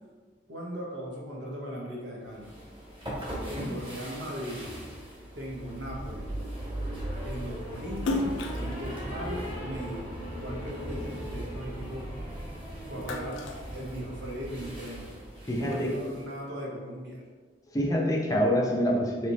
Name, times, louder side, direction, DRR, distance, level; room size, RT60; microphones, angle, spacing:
voice 1, 0.5-2.5 3.5-4.6 5.3-6.3 7.2-10.1 10.4-12.1 12.9-13.4 13.7-15.1 15.5-17.2, equal, 75° right, -3 dB, 1.0 m, -38 dB
sound 1, 2.3-16.2, right 1 dB, 25° right, 1.4 m, -38 dB
Splash splatter, 8.0-10.5 11.0-12.4 12.8-14.5, left 2 dB, 85° left, 0.4 m, -35 dB
voice 2, 15.5-15.9 17.7-19.3, equal, 20° left, -1 dB, 0.5 m, -26 dB
3.3 x 3.0 x 4.0 m, 1.5 s
head